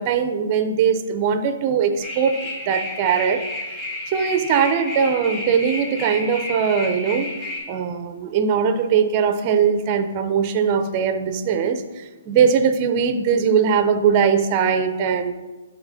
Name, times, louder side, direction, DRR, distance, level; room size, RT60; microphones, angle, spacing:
voice 1, 0.0-2.4 2.7-3.4 4.1-7.3 7.7-15.3, right 7 dB, 35° right, 9 dB, 0.6 m, -20 dB
sound 1, 2.0-7.6, left 1 dB, 25° left, 2.4 m, -31 dB
12.0 x 4.3 x 2.7 m, 1.2 s
figure-of-eight pair, 130°, 0 cm